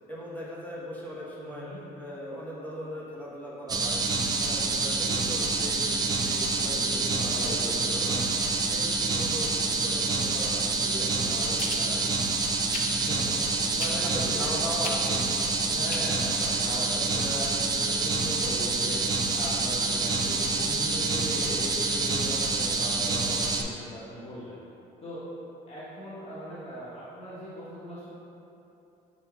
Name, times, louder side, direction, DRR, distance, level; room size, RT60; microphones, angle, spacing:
voice 1, 0.1-1.7 2.0-4.0 4.4-6.0 6.2-8.3 8.6-11.8 13.9-15.3, equal, 10° left, -7 dB, 1.0 m, -39 dB
voice 2, 1.4-1.8 6.6-8.4 11.2-12.2 12.9-14.5 15.7-24.5 25.0-25.3 25.7-28.1, equal, 35° left, -11 dB, 1.4 m, -39 dB
sound 1, 3.7-23.6, right 3 dB, 25° right, 0.3 m, -27 dB
sound 2, 11.6-11.8 12.7-12.9 13.8-14.2 14.8-15.0 15.9-16.0 16.4-16.5, left 5 dB, 55° left, 0.5 m, -35 dB
7.0 x 2.6 x 2.3 m, 2.8 s
cardioid pair, 110°, 17 cm